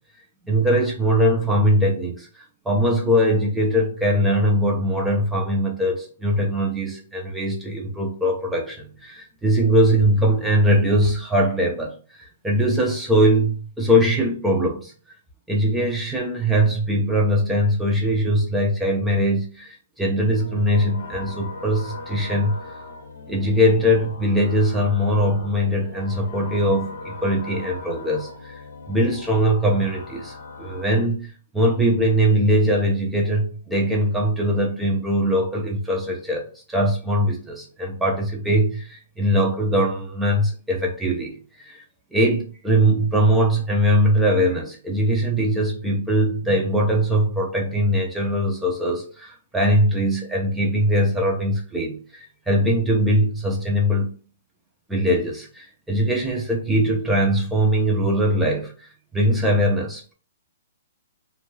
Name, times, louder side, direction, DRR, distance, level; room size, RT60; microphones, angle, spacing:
voice 1, 0.4-2.3 2.7-11.9 12.4-14.9 15.5-22.5 23.3-28.6 28.9-41.8 42.1-54.1 54.9-60.1, equal, 5° right, 0.5 m, -21 dB
sound 1, 20.3-31.0, left 3 dB, 80° left, 0.7 m, -39 dB
2.6 x 2.3 x 3.0 m
hypercardioid pair, 175°, 0 cm